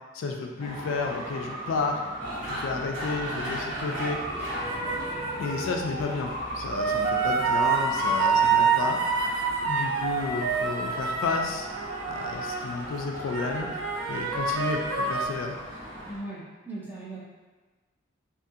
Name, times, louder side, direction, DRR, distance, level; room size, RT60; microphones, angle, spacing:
voice 1, 0.1-2.1 2.5-4.2 5.4-9.0 9.6-11.7 12.1-13.7 14.1-15.6, left 4 dB, 70° left, 2 dB, 0.3 m, -31 dB
Traffic noise roadway noise, 0.6-16.1, right 1 dB, 65° right, 1.2 m, -39 dB
sound 1, 2.2-16.2, equal, 35° right, 1.3 m, -40 dB
sound 2, 4.5-5.8 6.7-12.9 13.3-15.3, right 5 dB, 80° right, 0.4 m, -27 dB
voice 2, 16.1-17.2, right 2 dB, 10° right, -7 dB, 0.6 m, -38 dB
2.8 x 2.3 x 2.7 m, 1.3 s
head